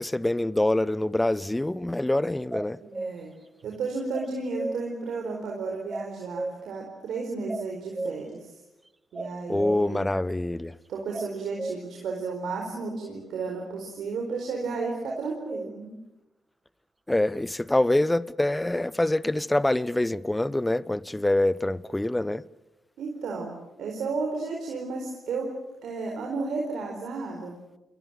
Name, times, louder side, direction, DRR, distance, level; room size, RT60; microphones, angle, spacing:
voice 1, 0.0-2.8 9.5-10.7 17.1-22.4, left 1 dB, 15° left, 1.0 m, -25 dB
sound 1, 2.5-3.2 4.1-4.8 5.9-6.7 7.5-8.2 9.1-9.8 11.1-11.8 15.1-15.7, right 2 dB, 25° right, 1.1 m, -34 dB
voice 2, 2.8-3.3 3.6-8.4 9.1-10.0 10.9-15.9 23.0-23.5 23.8-25.5 25.8-27.6, right 4 dB, 70° right, 4.6 m, -33 dB
29.0 x 23.0 x 7.7 m
hypercardioid pair, 40°, 0 cm